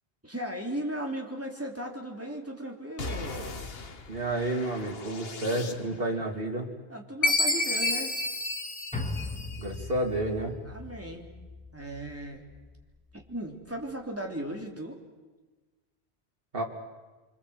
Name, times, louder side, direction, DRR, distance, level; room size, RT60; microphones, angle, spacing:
voice 1, 0.2-3.5 6.9-8.1 10.7-11.3 11.7-12.4 13.1-15.0, right 1 dB, 10° right, 0 dB, 3.3 m, -36 dB
sound 1, 3.0-6.2, left 3 dB, 65° left, 1.6 m, -40 dB
voice 2, 4.1-6.7 9.6-10.6 16.5-16.6, right 1 dB, 60° right, 2 dB, 3.1 m, -30 dB
Chime, 7.2-9.8, left 2 dB, 45° left, 2.2 m, -28 dB
sound 2, 8.9-13.4 13.7-13.8, left 3 dB, 5° left, 2.4 m, -40 dB
25.5 x 25.5 x 8.1 m, 1.2 s
omnidirectional pair, 1.1 m